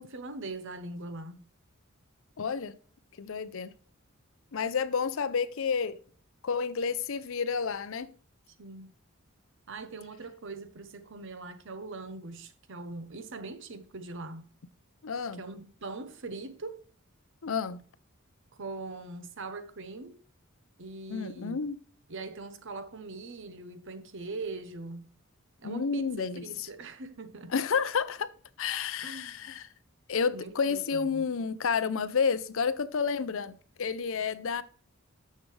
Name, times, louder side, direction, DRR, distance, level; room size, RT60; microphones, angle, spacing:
voice 1, 0.0-1.4 8.6-8.9 9.7-14.5 15.4-16.8 18.5-20.2 20.8-21.6 22.1-25.0 25.6-27.5 29.0-29.3 30.3-31.2, right 3 dB, 60° right, 0.9 m, -41 dB
voice 2, 2.4-2.7 3.2-3.7 4.5-6.0 6.4-8.1 15.0-15.4 17.4-17.8 21.1-21.8 25.6-26.4 27.5-28.3 28.6-29.7 30.1-34.6, left 6 dB, 65° left, 0.6 m, -30 dB
9.6 x 6.6 x 3.3 m
head